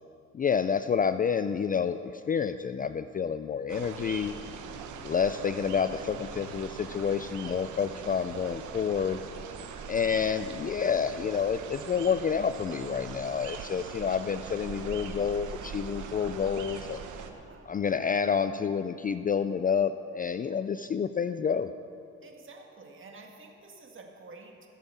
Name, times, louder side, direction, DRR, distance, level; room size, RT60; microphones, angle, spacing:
voice 1, 0.3-4.3 5.0-9.2 9.9-17.0 17.7-21.7, left 6 dB, 30° left, 11 dB, 0.3 m, -29 dB
sound 1, 3.7-17.3, right 6 dB, 75° right, 1.0 m, -41 dB
voice 2, 17.3-17.7 20.5-20.6 22.2-24.7, right 3 dB, 40° right, 1 dB, 2.0 m, -50 dB
15.5 x 7.3 x 7.0 m, 2.6 s
cardioid pair, 90°, 30 cm